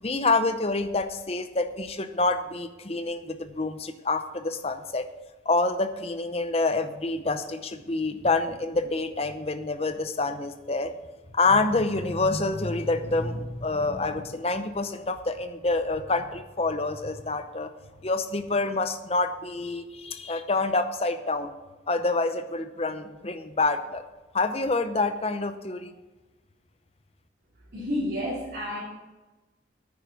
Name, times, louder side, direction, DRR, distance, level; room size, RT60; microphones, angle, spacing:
voice 1, 0.0-5.1 5.5-10.9 11.3-17.7 18.0-21.5 21.9-24.0 24.3-25.9, left 3 dB, 30° left, 9 dB, 0.7 m, -27 dB
voice 2, 27.7-28.8, left 1 dB, 55° right, -11 dB, 3.8 m, -30 dB
9.7 x 9.2 x 4.9 m, 1.2 s
head